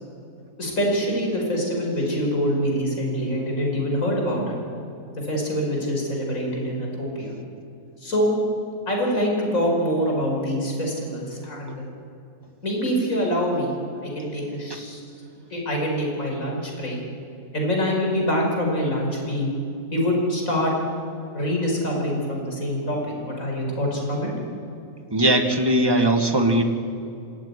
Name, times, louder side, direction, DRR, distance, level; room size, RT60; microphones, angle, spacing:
voice 1, 0.6-4.6 5.2-7.3 8.0-8.3 8.9-11.8 12.6-13.7 14.0-15.0 15.5-17.0 17.5-19.5 19.9-20.7 21.3-24.3, equal, 65° left, 0 dB, 5.8 m, -25 dB
voice 2, 25.1-26.6, right 1 dB, 15° right, 4 dB, 1.9 m, -19 dB
25.5 x 13.5 x 10.0 m, 2.6 s
omnidirectional pair, 1.5 m